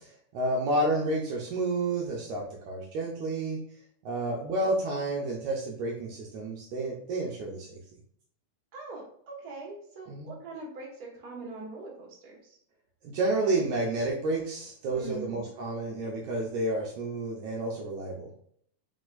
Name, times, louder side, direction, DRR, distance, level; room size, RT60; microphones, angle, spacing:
voice 1, 0.3-3.6 4.0-7.7 10.1-10.3 13.0-18.3, right 2 dB, 75° right, -2 dB, 1.9 m, -30 dB
voice 2, 8.7-12.6 14.9-15.5, right 2 dB, 40° right, -4 dB, 1.4 m, -43 dB
5.0 x 4.1 x 2.5 m, 0.65 s
omnidirectional pair, 3.8 m